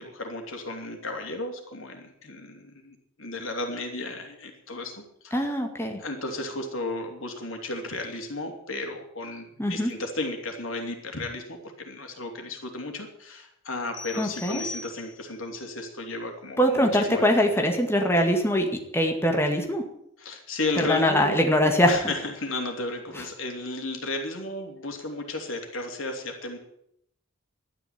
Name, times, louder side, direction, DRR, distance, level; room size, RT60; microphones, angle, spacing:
voice 1, 0.0-5.6 6.0-17.6 20.2-21.5 21.8-26.6, left 2 dB, 80° left, 4 dB, 3.1 m, -34 dB
voice 2, 5.3-6.0 9.6-9.9 14.2-14.6 16.6-18.7 18.9-19.8 20.8-22.0, equal, 10° left, 3 dB, 2.0 m, -22 dB
sound 1, 13.9-15.5, left 3 dB, 65° left, 3.0 m, -39 dB
12.5 x 10.0 x 9.5 m, 0.72 s
head